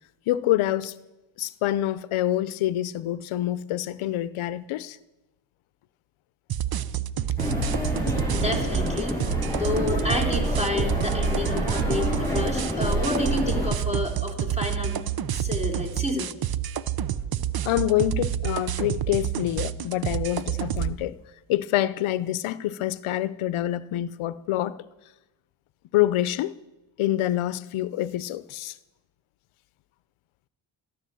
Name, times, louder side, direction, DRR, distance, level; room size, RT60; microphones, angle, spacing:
voice 1, 0.3-0.9 1.4-5.0 17.6-21.2 21.5-24.8 25.9-26.6 27.0-28.8, left 14 dB, 85° left, 0.7 m, -26 dB
sound 1, 6.5-20.9, right 10 dB, 50° right, 0.7 m, -29 dB
sound 2, 7.4-13.7, left 1 dB, 5° left, 8.0 m, -28 dB
voice 2, 8.3-9.2 9.5-15.0 15.3-16.3, left 2 dB, 15° right, 3.8 m, -30 dB
14.0 x 12.5 x 7.7 m
cardioid pair, 95°, 48 cm